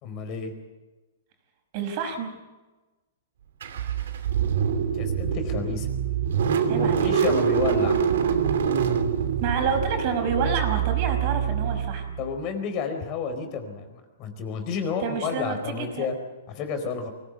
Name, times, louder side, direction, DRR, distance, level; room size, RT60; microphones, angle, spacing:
voice 1, 0.0-0.5 4.9-5.9 6.7-8.0 12.2-16.1 16.5-17.1, left 5 dB, 35° left, 6 dB, 4.4 m, -30 dB
voice 2, 1.7-2.4 6.7-7.2 9.4-12.0 14.8-16.1, right 5 dB, 40° right, 6 dB, 5.2 m, -29 dB
Car / Engine starting, 3.6-12.4, right 7 dB, 75° right, 3.0 m, -25 dB
24.0 x 17.5 x 8.2 m, 1.2 s
hypercardioid pair, 155°, 0 cm